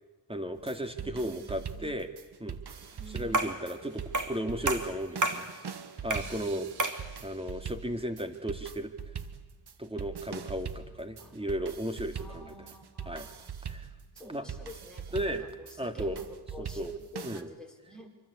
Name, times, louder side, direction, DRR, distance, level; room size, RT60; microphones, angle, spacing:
voice 1, 0.3-2.1 2.4-2.6 3.1-5.5 6.0-6.7 7.2-8.9 9.8-12.6 13.1-13.3 13.7-13.9 14.2-14.5 15.1-15.5 15.8-16.2 16.6-16.9 17.2-17.5, equal, 15° right, 7 dB, 2.4 m, -35 dB
sound 1, 0.6-17.4, right 7 dB, 70° right, 1.5 m, -42 dB
voice 2, 1.0-1.9 2.9-3.5 6.1-6.7 11.2-11.5 12.1-13.5 14.1-18.1, equal, ahead, 0 dB, 5.7 m, -49 dB
sound 2, 3.3-3.6 4.1-4.4 4.7-5.5 6.1-6.4 6.8-7.1, right 2 dB, 45° right, 2.6 m, -30 dB
26.0 x 24.5 x 8.6 m, 1.2 s
wide cardioid pair, 80°, 42 cm